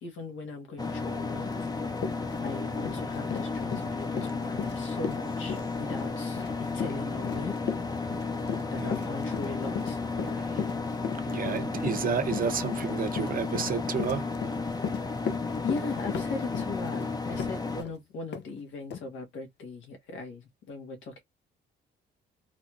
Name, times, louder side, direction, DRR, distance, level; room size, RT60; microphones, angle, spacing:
voice 1, 0.0-1.5 2.4-7.6 8.7-10.4 15.6-21.2, left 4 dB, 80° left, 1.6 m, -39 dB
sound 1, 0.8-17.8, left 3 dB, 20° left, 0.7 m, -33 dB
Run, 1.6-1.7 2.0-17.9 18.3-18.5 18.9-19.0, left 7 dB, 60° left, 0.6 m, -36 dB
voice 2, 8.8-9.1 11.3-14.3, right 7 dB, 45° right, 0.8 m, -31 dB
3.9 x 3.1 x 2.4 m
cardioid pair, 90°, 20 cm